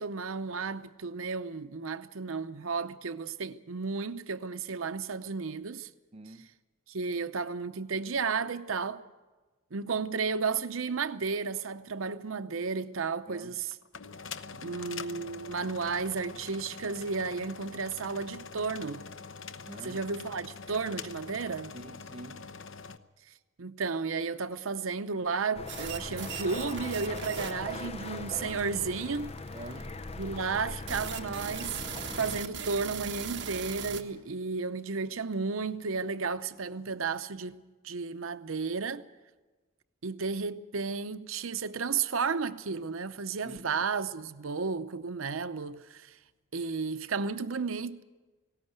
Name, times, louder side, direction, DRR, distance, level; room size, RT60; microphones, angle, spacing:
voice 1, 0.0-5.9 6.9-9.0 9.7-13.7 14.6-19.0 19.8-21.8 23.6-29.3 30.2-31.8 32.2-37.6 37.8-39.1 40.0-46.2 46.5-48.0, right 5 dB, 90° right, 0.8 m, -33 dB
voice 2, 6.1-6.5 13.3-13.5 19.6-20.1 21.7-22.5 29.5-30.0 43.4-43.8, right 1 dB, 30° right, 0.9 m, -46 dB
sound 1, 13.7-23.0, left 5 dB, 70° left, 0.9 m, -44 dB
sound 2, 25.5-32.4, left 3 dB, 30° left, 0.7 m, -40 dB
sound 3, 25.7-34.0, right 7 dB, 60° right, 1.5 m, -39 dB
19.5 x 17.5 x 8.1 m
head